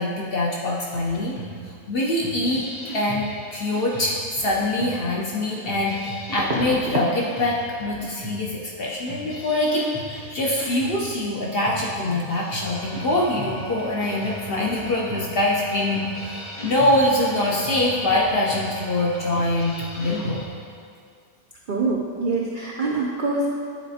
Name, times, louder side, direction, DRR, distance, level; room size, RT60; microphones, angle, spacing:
voice 1, 0.0-1.4 1.9-16.4 16.6-20.4, left 1 dB, 55° left, -3 dB, 0.7 m, -24 dB
sound 1, 0.9-20.4, equal, 75° left, 1.6 m, -38 dB
sound 2, 6.4-7.2 7.5-7.8 8.1-8.3 11.2-11.3 11.6-11.8 12.1-12.2, right 1 dB, 50° right, 0.9 m, -29 dB
Engine / Tools, 12.5-20.8, right 2 dB, 15° left, 0.7 m, -42 dB
voice 2, 21.7-23.5, right 3 dB, 75° right, -2 dB, 0.4 m, -24 dB
9.1 x 4.0 x 2.8 m, 2.2 s
omnidirectional pair, 1.5 m